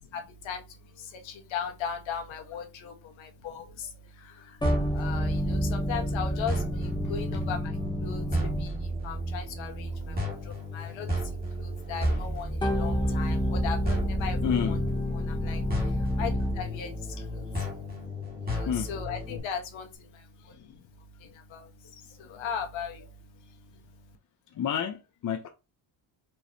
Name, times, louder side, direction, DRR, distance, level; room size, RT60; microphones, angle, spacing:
voice 1, 1.2-2.9 3.2-3.6 4.9-6.5 7.1-7.6 8.0-8.2 9.0-10.2 10.7-11.1 11.6-14.4 14.6-14.8 15.4-15.6 16.2-16.3 16.6-16.9 17.3-17.4 18.5-19.9 21.5-21.6 22.3-23.0, left 7 dB, 70° left, 1.4 m, -36 dB
sound 1, 4.6-9.0 12.6-16.8, left 1 dB, 10° left, 0.8 m, -29 dB
sound 2, 4.6-19.4, right 1 dB, 20° right, 1.8 m, -33 dB
voice 2, 14.4-14.8 15.1-15.2 18.5-18.9 20.4-20.5 22.2-22.4 24.5-25.5, left 8 dB, 40° left, 0.7 m, -31 dB
4.6 x 3.1 x 2.7 m
cardioid pair, 135°, 48 cm